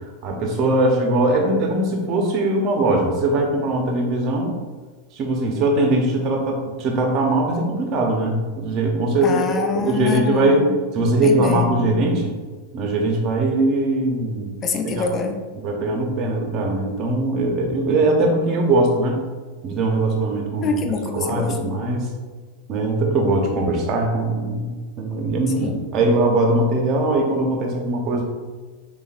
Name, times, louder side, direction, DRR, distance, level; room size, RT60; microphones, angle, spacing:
voice 1, 0.2-4.6 5.1-12.3 12.7-14.5 15.0-15.1 15.5-19.2 19.6-20.7 21.1-22.1 22.7-28.2, right 2 dB, 45° right, 2 dB, 0.9 m, -21 dB
voice 2, 9.2-11.9 14.6-15.4 20.6-21.7 25.6-25.8, left 4 dB, 30° left, 4 dB, 0.5 m, -26 dB
6.7 x 2.5 x 2.5 m, 1.4 s
hypercardioid pair, 100°, 0 cm